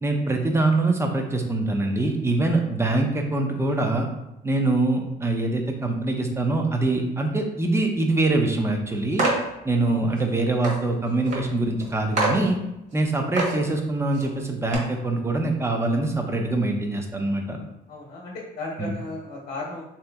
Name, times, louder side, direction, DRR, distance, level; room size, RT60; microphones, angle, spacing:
voice 1, 0.0-4.1 4.4-9.3 9.6-12.6 12.9-17.6 18.8-19.0, right 2 dB, 15° right, 3 dB, 0.6 m, -24 dB
sound 1, 9.2-9.4 10.2-10.3 10.6-10.8 11.3-11.4 11.8-11.9 12.2-12.4 12.9-13.0 13.3-13.6 14.1-14.3 14.7-14.8, right 2 dB, 45° right, 1.2 m, -25 dB
voice 2, 17.9-19.8, left 2 dB, 50° left, -3 dB, 1.0 m, -35 dB
3.0 x 2.9 x 3.5 m, 0.89 s
cardioid pair, 110°, 17 cm